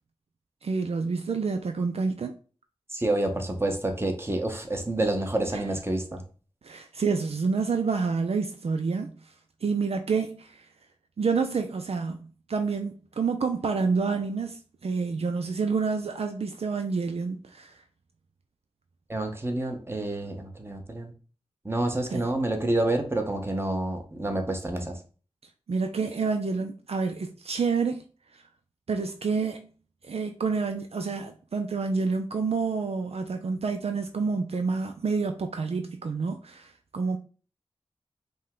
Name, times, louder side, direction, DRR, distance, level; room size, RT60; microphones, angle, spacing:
voice 1, 0.6-2.3 5.5-5.6 6.6-9.1 9.6-10.7 11.2-17.7 22.1-22.3 25.7-28.0 28.9-29.7 30.1-37.2, right 4 dB, 65° right, 0.4 m, -28 dB
voice 2, 2.9-6.2 19.1-21.1 21.6-25.0, right 1 dB, 20° right, 1.0 m, -28 dB
5.3 x 2.2 x 3.7 m
cardioid pair, 45°, 11 cm